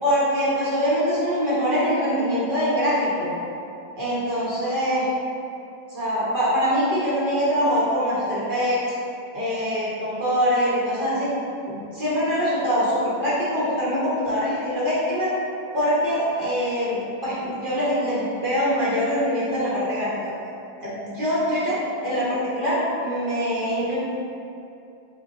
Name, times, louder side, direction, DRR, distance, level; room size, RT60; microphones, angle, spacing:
voice 1, 0.0-3.3 4.0-5.1 5.9-8.8 9.3-11.3 11.7-15.3 15.7-20.1 20.8-24.0, equal, 35° right, -9 dB, 0.9 m, -23 dB
5.7 x 2.3 x 3.6 m, 2.6 s
omnidirectional pair, 2.0 m